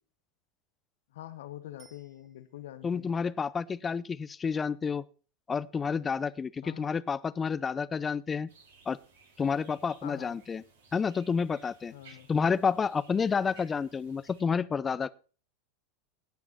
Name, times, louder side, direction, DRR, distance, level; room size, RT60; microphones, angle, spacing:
voice 1, 1.1-3.2 6.6-6.9 10.0-10.4 11.9-12.3, left 13 dB, 70° left, 11 dB, 1.1 m, -45 dB
Bicycle bell, 1.8-2.9 12.0-12.1, right 4 dB, 35° right, 3.5 m, -62 dB
voice 2, 2.8-5.0 5.5-8.5 8.9-9.0 9.4-10.6 10.9-11.9 12.3-15.1, left 6 dB, 25° left, 18 dB, 0.6 m, -30 dB
sound 1, 8.5-14.4, right 4 dB, 75° right, 4.6 m, -60 dB
18.0 x 6.0 x 4.2 m, 0.37 s
hypercardioid pair, 95°, 0 cm